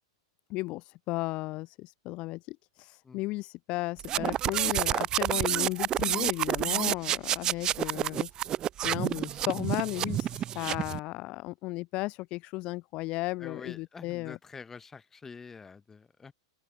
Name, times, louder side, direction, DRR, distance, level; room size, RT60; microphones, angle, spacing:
voice 1, 0.5-8.3 8.8-14.4, left 21 dB, 40° left, 7.8 m, -35 dB
sound 1, 4.0-11.0, right 11 dB, 25° right, 1.3 m, -29 dB
voice 2, 13.4-16.3, left 5 dB, 15° left, 5.8 m, -46 dB
hypercardioid pair, 135°, 3 cm